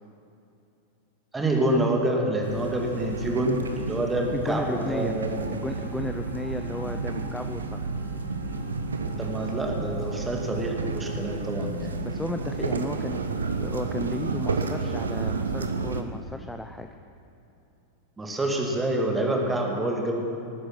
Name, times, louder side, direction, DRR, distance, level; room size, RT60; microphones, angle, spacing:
voice 1, 1.3-5.5 6.8-7.0 9.2-12.1 18.2-20.3, right 1 dB, 15° right, 1 dB, 2.2 m, -27 dB
sound 1, 2.4-16.0, right 4 dB, 70° right, 0.9 m, -31 dB
voice 2, 4.3-5.1 5.5-7.8 12.0-13.2 13.6-16.9, left 1 dB, 5° left, 6 dB, 0.6 m, -34 dB
Wind instrument woodwind instrument, 5.6-11.7, right 1 dB, 40° left, 3.8 m, -47 dB
18.5 x 9.6 x 6.0 m, 2.9 s
figure-of-eight pair, 90°, 0 cm